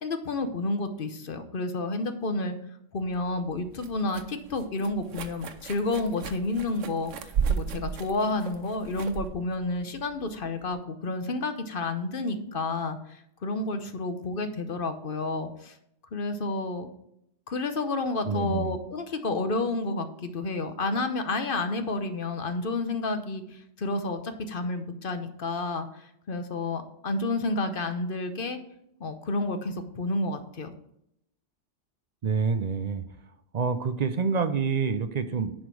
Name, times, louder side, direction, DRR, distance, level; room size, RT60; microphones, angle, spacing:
voice 1, 0.0-2.5 2.9-15.7 16.1-16.9 17.5-28.6 29.0-30.7, left 2 dB, 50° left, 8 dB, 1.0 m, -30 dB
sound 1, 3.0-10.8, right 7 dB, 90° right, 1.1 m, -35 dB
voice 2, 18.2-18.8 32.2-33.0 33.5-35.5, right 5 dB, 45° right, 10 dB, 0.6 m, -27 dB
10.0 x 5.1 x 4.7 m, 0.77 s
omnidirectional pair, 1.2 m